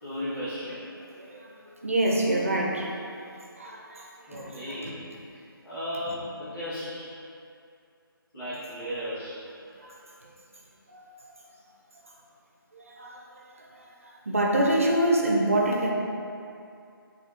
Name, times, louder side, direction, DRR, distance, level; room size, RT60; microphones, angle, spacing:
voice 1, 0.0-0.8 4.3-4.9 5.6-7.1 8.3-9.3 11.2-11.3, equal, 10° left, -19 dB, 1.5 m, -35 dB
voice 2, 1.2-4.9 6.1-6.2 9.8-10.3 10.9-11.1 12.7-13.2 13.6-15.9, right 1 dB, 35° right, -1 dB, 0.7 m, -27 dB
8.1 x 3.4 x 4.5 m, 2.5 s
figure-of-eight pair, 180°, 12 cm